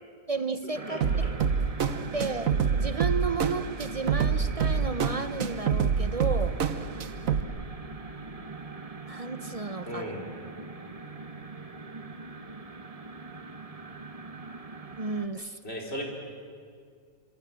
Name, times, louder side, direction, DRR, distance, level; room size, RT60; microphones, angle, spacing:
voice 1, 0.3-1.3 2.1-7.2 9.1-10.1 15.0-15.6, right 4 dB, 40° right, 11 dB, 0.5 m, -33 dB
sound 1, 0.7-15.3, right 3 dB, 25° right, 1.3 m, -42 dB
sound 2, 1.0-7.4, right 6 dB, 55° right, 1.4 m, -27 dB
voice 2, 9.9-10.3 15.6-16.0, equal, 35° left, -1 dB, 5.1 m, -35 dB
26.5 x 25.5 x 7.6 m, 2.1 s
omnidirectional pair, 1.8 m